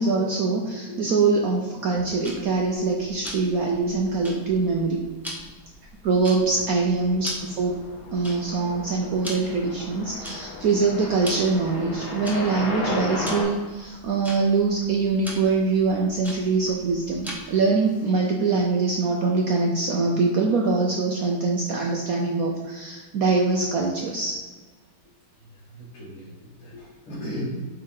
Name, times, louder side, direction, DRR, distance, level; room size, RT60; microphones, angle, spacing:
voice 1, 0.0-5.0 6.0-7.7 8.1-24.4, right 4 dB, 80° right, 0 dB, 0.8 m, -23 dB
Tick-tock, 2.2-17.7, equal, ahead, 0.8 m, -42 dB
sound 1, 7.3-13.4, left 2 dB, 45° left, 1.6 m, -34 dB
voice 2, 25.6-27.5, equal, 85° left, -11 dB, 2.8 m, -36 dB
8.0 x 3.4 x 3.9 m, 1.4 s
omnidirectional pair, 2.3 m